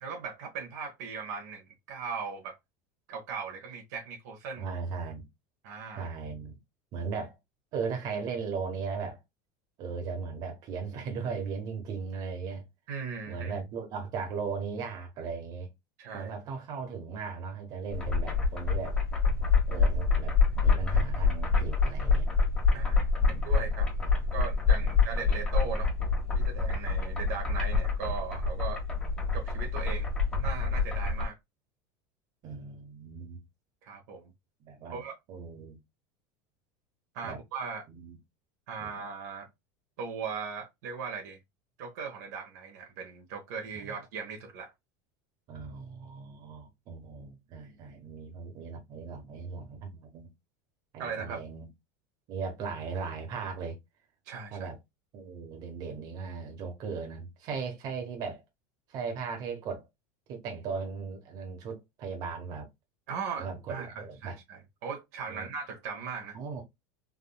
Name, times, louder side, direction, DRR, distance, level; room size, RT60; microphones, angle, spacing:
voice 1, 0.0-2.6 3.1-4.6 5.6-6.1 12.9-13.6 16.0-16.3 22.7-23.9 24.3-25.9 26.3-28.8 29.3-30.1 30.4-31.4 33.8-34.3 34.9-35.1 37.1-37.8 38.7-39.5 40.0-41.4 41.8-44.7 51.0-51.4 54.3-54.7 63.1-66.4, right 5 dB, 70° right, 1.1 m, -38 dB
voice 2, 4.6-5.3 6.0-6.6 6.9-7.3 7.7-9.2 9.8-12.6 13.3-15.7 16.1-19.0 19.7-20.4 20.6-22.3 23.2-23.5 24.0-24.2 24.8-25.3 32.4-33.4 34.6-35.0 35.3-35.8 37.2-37.4 37.9-38.2 38.8-38.9 43.8-43.9 45.5-50.3 50.9-51.7 52.3-53.8 54.5-54.8 55.1-58.4 58.9-59.9 60.3-62.7 63.3-64.4 65.3-65.5 66.3-66.6, right 5 dB, 40° right, 1.2 m, -37 dB
sound 1, 17.9-31.3, left 4 dB, 10° left, 1.1 m, -26 dB
3.5 x 2.6 x 2.3 m
supercardioid pair, 155°, 10 cm